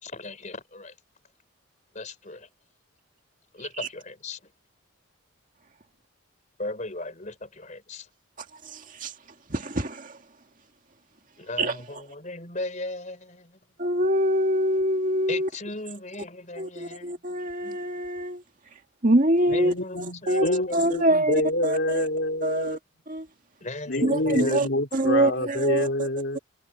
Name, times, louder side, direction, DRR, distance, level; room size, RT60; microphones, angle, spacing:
voice 1, 0.0-0.9 1.9-2.5 3.5-4.4 6.6-8.1 11.4-13.6 15.3-17.1 19.5-20.9 23.6-24.7, left 2 dB, 35° left, 4.3 m, -37 dB
voice 2, 8.7-9.1 9.5-10.1 11.6-11.7 13.8-15.5 16.6-18.4 19.0-21.3 21.6-22.0 22.4-22.8 24.0-25.9, right 1 dB, 40° right, 2.2 m, -24 dB
voice 3, 19.5-22.8 23.9-26.4, left 1 dB, 60° left, 3.6 m, -27 dB
head